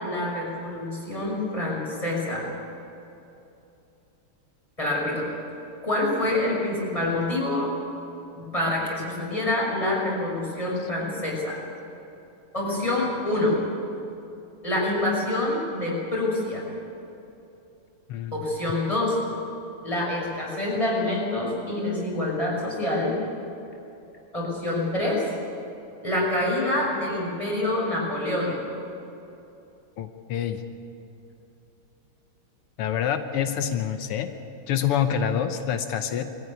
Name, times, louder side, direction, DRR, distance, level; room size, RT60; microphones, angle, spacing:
voice 1, 0.0-2.5 4.8-5.3 5.8-7.7 8.3-11.6 12.5-13.6 14.6-16.7 18.3-19.2 19.8-23.2 24.3-25.3 26.0-28.7, left 1 dB, 15° left, -3 dB, 5.9 m, -26 dB
voice 2, 30.0-30.6 32.8-34.3 34.7-36.2, left 9 dB, 90° left, 8 dB, 1.9 m, -26 dB
21.5 x 14.5 x 9.8 m, 2.8 s
omnidirectional pair, 2.4 m